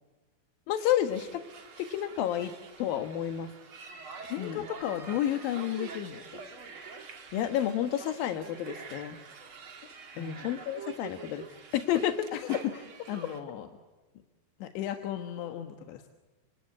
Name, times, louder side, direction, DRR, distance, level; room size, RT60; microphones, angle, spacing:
voice 1, 0.7-1.4 1.8-2.5 2.8-3.5 4.4-4.7 7.3-9.2 10.2-11.4 11.7-12.3, left 11 dB, 65° left, 9 dB, 2.8 m, -30 dB
sound 1, 0.8-13.4, right 5 dB, 35° right, 2.4 m, -46 dB
voice 2, 4.0-6.4 10.1-10.5 12.3-13.7 14.6-16.1, left 11 dB, 80° left, 6 dB, 3.6 m, -34 dB
28.5 x 25.0 x 8.5 m, 1.2 s
omnidirectional pair, 5.1 m